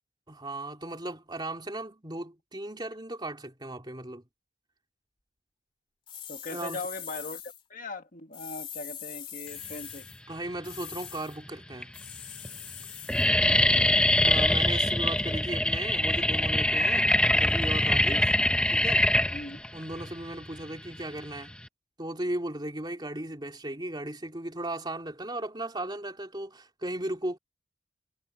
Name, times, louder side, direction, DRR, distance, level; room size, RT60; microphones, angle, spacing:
voice 1, 0.3-4.2 6.5-6.8 10.3-11.9 14.2-18.2 18.7-19.1 19.7-21.5 22.0-27.4, right 1 dB, 20° right, 3.2 m, -36 dB
sound 1, 6.1-7.6 8.3-10.2 10.6-11.4 11.9-13.3, left 9 dB, 30° left, 2.7 m, -42 dB
voice 2, 6.3-7.4 7.7-10.1 13.9-14.0 18.0-18.2 19.3-19.6, left 2 dB, 45° left, 1.7 m, -39 dB
sound 2, 10.5-11.1 11.7-11.8 12.1-12.5 12.7-21.7, left 1 dB, 5° left, 0.9 m, -24 dB
head